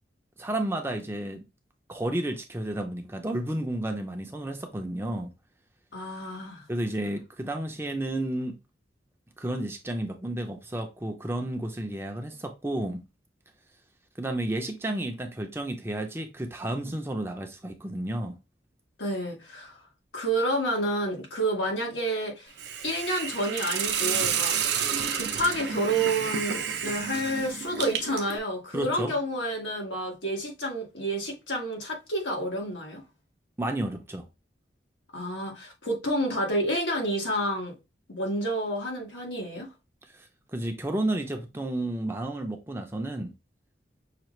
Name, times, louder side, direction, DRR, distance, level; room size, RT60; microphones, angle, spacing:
voice 1, 0.4-1.4 1.9-5.3 6.7-8.6 9.4-13.0 14.2-18.4 28.7-29.1 33.6-34.3 40.1-43.3, right 1 dB, 15° right, 0.6 m, -31 dB
voice 2, 5.9-6.6 19.0-19.8 20.1-22.5 22.8-24.6 25.1-33.0 35.1-37.8 38.1-39.7, right 1 dB, 85° left, 1.6 m, -29 dB
Hiss, 22.6-28.4, right 7 dB, 65° right, 0.6 m, -30 dB
5.8 x 2.5 x 3.1 m
head